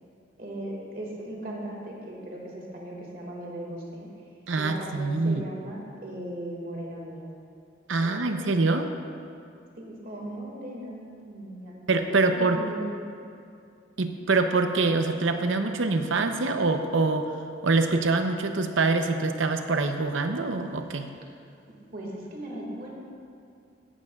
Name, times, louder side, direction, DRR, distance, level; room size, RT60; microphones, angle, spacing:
voice 1, 0.4-4.1 4.6-7.3 8.0-8.4 9.8-12.9 21.9-22.9, right 1 dB, 50° right, -2 dB, 2.1 m, -38 dB
voice 2, 4.5-5.4 7.9-8.9 11.9-12.6 14.0-17.3 17.6-21.1, right 3 dB, 90° right, 7 dB, 0.7 m, -25 dB
16.0 x 11.5 x 2.4 m, 2.4 s
head